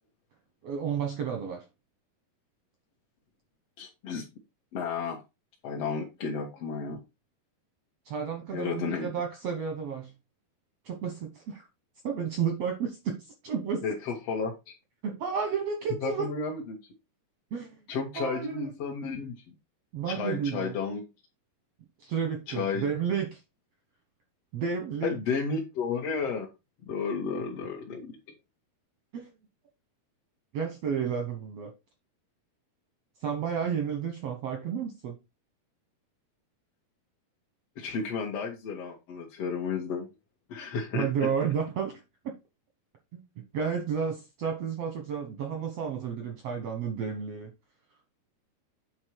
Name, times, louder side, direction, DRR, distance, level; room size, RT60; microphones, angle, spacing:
voice 1, 0.6-1.6 8.0-10.1 10.8-11.6 12.0-13.2 13.4-13.8 15.0-16.3 17.5-17.8 18.2-18.5 19.9-20.8 22.0-23.4 24.5-25.2 29.1-29.3 30.5-31.7 33.2-35.2 40.9-42.3 43.1-43.2 43.5-47.5, right 7 dB, 70° right, 1.5 m, -31 dB
voice 2, 3.8-4.2 4.7-5.2 5.6-7.0 8.5-9.1 13.8-14.7 16.0-16.8 17.9-19.3 20.1-21.0 22.5-22.9 25.0-26.5 26.9-28.2 37.8-40.1 40.5-41.1, left 5 dB, 55° left, 1.8 m, -32 dB
8.6 x 4.5 x 4.6 m
omnidirectional pair, 4.5 m